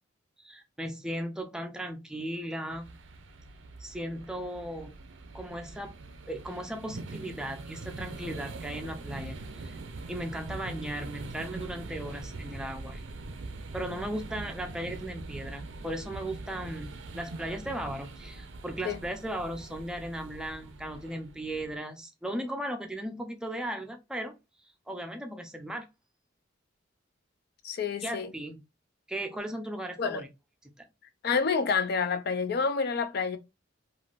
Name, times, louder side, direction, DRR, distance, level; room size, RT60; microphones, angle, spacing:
voice 1, 0.4-2.9 3.8-4.9 5.3-6.0 6.3-9.8 10.1-13.0 13.7-24.4 24.9-25.9 28.0-28.6 29.1-30.3 30.8-30.9, right 1 dB, 5° right, 0.5 m, -37 dB
sound 1, 2.7-21.8, right 3 dB, 65° right, 0.5 m, -43 dB
voice 2, 27.6-28.3 30.0-30.2 31.2-33.4, left 5 dB, 55° left, 0.4 m, -28 dB
3.3 x 2.5 x 2.4 m
head